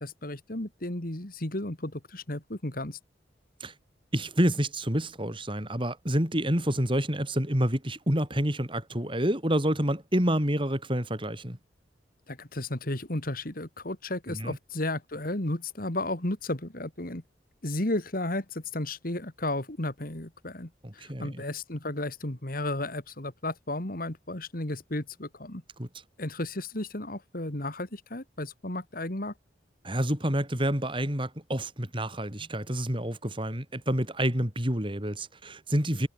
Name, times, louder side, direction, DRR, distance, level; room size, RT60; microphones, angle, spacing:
voice 1, 0.0-3.0 12.3-17.2 17.6-25.6 26.2-29.3, left 1 dB, 50° left, 2.6 m, -33 dB
voice 2, 4.1-11.6 14.3-14.6 20.8-21.4 25.8-25.9 29.8-36.1, right 1 dB, 30° right, 5.4 m, -28 dB
head